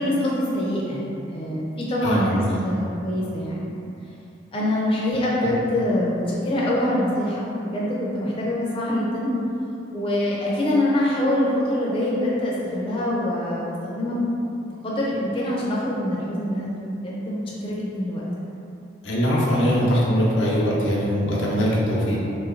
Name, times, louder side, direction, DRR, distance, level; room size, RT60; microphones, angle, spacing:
voice 1, 0.0-3.7 4.5-9.3 9.9-14.3 14.6-18.2, left 1 dB, 30° left, -6 dB, 0.5 m, -25 dB
voice 2, 2.0-2.4 19.0-22.2, equal, 85° left, -5 dB, 0.8 m, -21 dB
3.1 x 3.1 x 3.7 m, 2.8 s
head